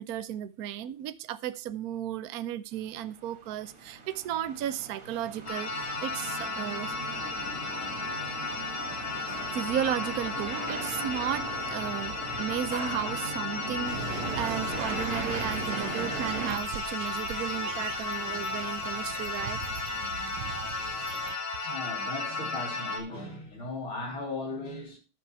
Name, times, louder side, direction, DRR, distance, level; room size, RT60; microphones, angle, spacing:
voice 1, 0.0-6.9 8.8-8.9 9.5-19.6, right 10 dB, 70° right, 0.9 m, -34 dB
sound 1, 3.4-16.6, right 3 dB, 45° right, 2.2 m, -38 dB
sound 2, 5.5-23.0, left 3 dB, 55° left, 2.4 m, -34 dB
sound 3, 13.8-21.4, right 10 dB, 90° right, 1.7 m, -43 dB
voice 2, 21.6-25.0, left 2 dB, 75° left, 4.2 m, -37 dB
12.5 x 6.8 x 4.6 m
omnidirectional pair, 2.3 m